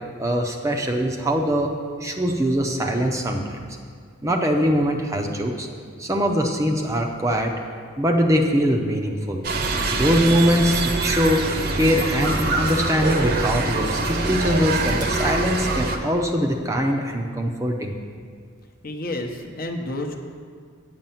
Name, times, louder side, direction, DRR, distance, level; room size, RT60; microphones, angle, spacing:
voice 1, 0.2-1.7 2.0-3.7 4.2-5.7 6.0-7.5 8.0-9.4 9.9-11.5 11.7-18.0, equal, 15° right, 2 dB, 0.6 m, -22 dB
sound 1, 9.4-16.0, right 3 dB, 45° right, 0.8 m, -24 dB
voice 2, 18.8-20.2, left 1 dB, 45° left, 2 dB, 0.8 m, -30 dB
9.1 x 7.9 x 5.7 m, 2.1 s
head